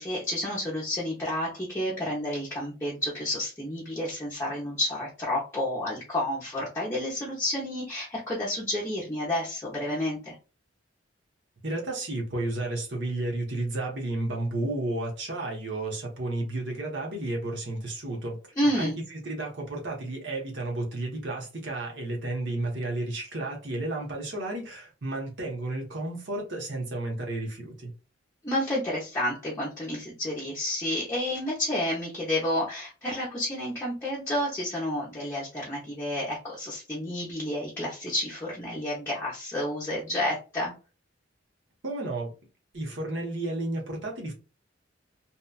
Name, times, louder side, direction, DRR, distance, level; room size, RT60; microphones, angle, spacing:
voice 1, 0.0-10.3 18.6-19.0 28.4-40.7, left 1 dB, 15° left, 0.7 m, -30 dB
voice 2, 11.6-18.4 18.7-27.9 41.8-42.3 42.7-44.3, right 2 dB, 65° right, 1.0 m, -32 dB
2.8 x 2.3 x 2.3 m
head